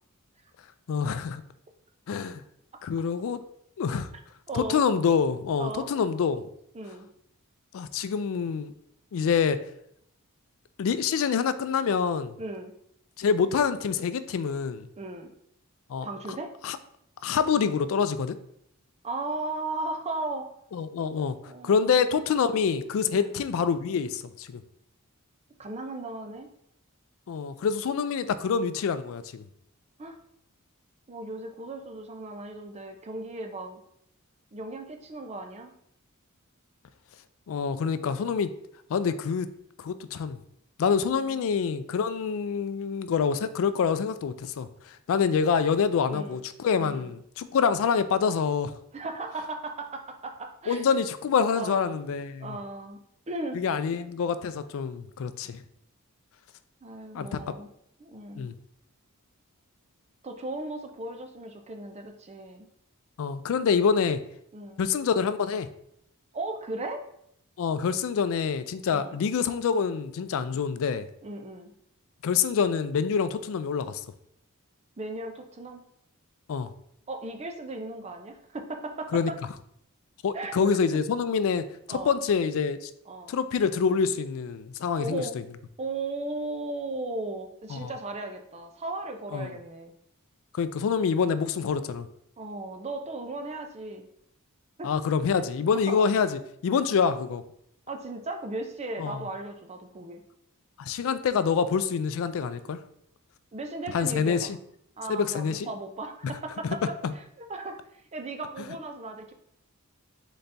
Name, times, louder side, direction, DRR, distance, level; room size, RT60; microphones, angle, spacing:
voice 1, 0.9-1.4 2.1-2.4 2.8-3.4 3.8-4.1 4.5-6.4 7.7-8.7 9.1-9.6 10.8-12.4 13.2-14.9 15.9-16.1 16.6-16.8 17.2-18.4 20.7-21.4 21.6-24.6 27.3-29.4 37.5-38.5 38.9-39.5 39.8-40.4 40.8-48.7 50.7-52.6 53.5-55.6 57.1-57.4 58.4-58.5 63.2-64.2 64.8-65.7 67.6-71.1 72.2-74.0 76.5-76.7 79.1-79.3 80.2-82.9 83.3-85.2 87.7-87.9 89.3-89.5 90.5-92.1 94.8-97.4 99.0-99.2 100.8-102.8 103.9-104.5 105.1-105.7 107.0-107.1, left 6 dB, 65° left, 13 dB, 0.3 m, -26 dB
voice 2, 4.5-4.8 5.6-5.9 6.7-7.1 12.4-12.7 15.0-15.3 16.0-16.5 19.0-20.5 21.4-22.0 23.1-23.4 25.6-26.5 30.0-30.2 31.1-33.8 34.5-35.7 41.1-41.4 46.1-46.4 46.8-47.1 48.9-51.0 51.5-51.9 52.4-53.0 53.3-53.6 56.8-57.7 58.0-58.5 60.2-62.7 64.5-64.8 66.3-67.0 68.9-69.2 71.2-71.7 75.0-75.9 77.1-79.2 80.3-81.0 81.9-82.2 83.1-83.3 85.0-85.4 85.8-89.9 92.4-94.1 94.8-95.0 95.9-96.0 97.9-100.2 103.5-104.5 105.0-109.3, right 2 dB, 30° right, 5 dB, 0.5 m, -36 dB
4.0 x 3.9 x 3.3 m, 0.72 s
head